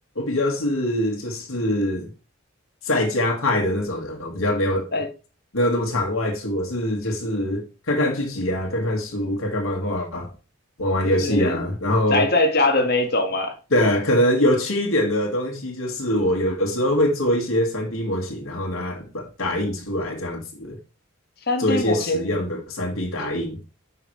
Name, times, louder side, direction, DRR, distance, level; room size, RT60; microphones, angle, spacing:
voice 1, 0.2-2.1 2.9-4.9 5.5-10.3 10.8-12.3 13.7-20.8 21.6-23.6, left 1 dB, 80° left, 2.0 m, -23 dB
voice 2, 11.1-11.7 12.1-13.5 21.5-22.4 23.2-23.3, left 2 dB, 50° left, 1.8 m, -22 dB
9.8 x 5.7 x 3.2 m
head